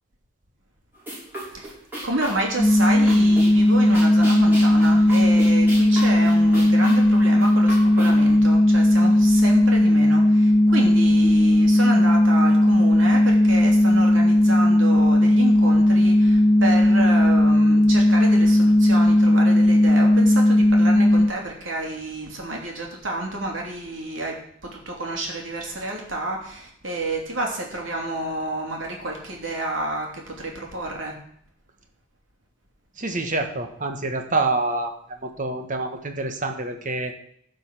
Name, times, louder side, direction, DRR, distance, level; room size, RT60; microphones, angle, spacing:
sound 1, 1.0-8.4, equal, 10° right, 5.7 m, -36 dB
voice 1, 2.0-31.1, right 2 dB, 80° right, 0 dB, 3.0 m, -30 dB
sound 2, 2.6-21.3, left 1 dB, 15° left, 1.8 m, -16 dB
voice 2, 33.0-34.9 35.2-37.1, right 2 dB, 40° right, 5 dB, 1.4 m, -26 dB
15.0 x 5.3 x 6.1 m, 0.67 s
head